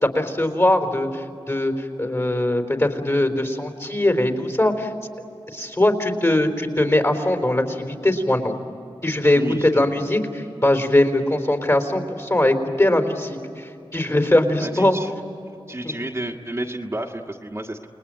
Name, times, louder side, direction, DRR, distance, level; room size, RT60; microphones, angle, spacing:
voice 1, 0.0-4.9 5.5-8.5 9.0-15.0, left 1 dB, 30° left, 5 dB, 4.0 m, -21 dB
voice 2, 9.3-10.1 14.0-14.2 14.6-15.1 15.7-17.9, right 1 dB, 25° right, 1 dB, 1.7 m, -31 dB
29.5 x 20.5 x 9.0 m, 2.8 s
wide cardioid pair, 65°, 10 cm